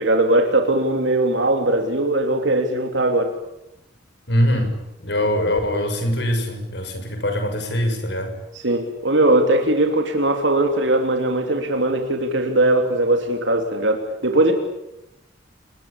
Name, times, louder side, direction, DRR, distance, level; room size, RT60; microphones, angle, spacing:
voice 1, 0.0-3.3 8.5-14.5, right 1 dB, 70° right, 3 dB, 3.1 m, -20 dB
voice 2, 4.3-4.7 5.0-8.3, left 1 dB, 60° left, 6 dB, 6.9 m, -22 dB
30.0 x 21.0 x 8.7 m, 0.90 s
head